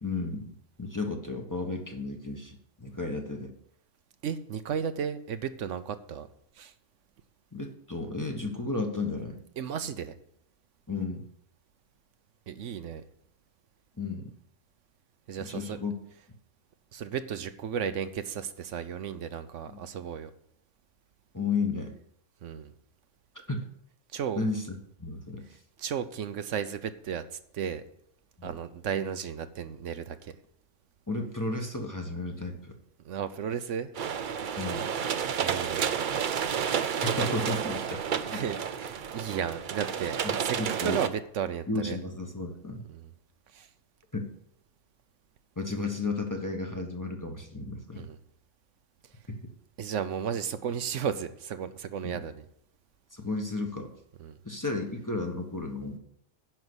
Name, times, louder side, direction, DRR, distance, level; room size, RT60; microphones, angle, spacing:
voice 1, 0.0-0.5 0.8-3.5 7.5-9.4 10.9-11.3 14.0-14.3 15.4-15.9 19.7-19.8 21.3-21.9 23.5-23.7 24.4-25.4 28.4-28.6 31.1-32.8 34.6-34.9 37.0-38.0 38.3-38.4 40.2-41.0 41.7-42.8 44.1-44.3 45.6-48.1 49.3-49.4 52.0-52.2 53.1-53.9 54.4-56.0, left 3 dB, 15° left, 3 dB, 1.1 m, -33 dB
voice 2, 4.2-6.3 6.6-6.7 9.6-10.1 12.5-13.0 15.3-15.8 16.9-20.3 22.4-22.7 24.1-24.4 25.8-27.2 27.5-27.8 28.4-30.3 33.0-33.9 35.4-35.9 38.3-40.6 40.8-42.0 42.9-43.1 43.5-43.7 47.9-48.2 49.8-52.4 54.2-54.4, right 8 dB, 75° right, 11 dB, 1.1 m, -34 dB
sound 1, 33.9-41.1, right 7 dB, 50° right, 0.7 m, -31 dB
10.5 x 5.5 x 8.0 m, 0.71 s
omnidirectional pair, 1.3 m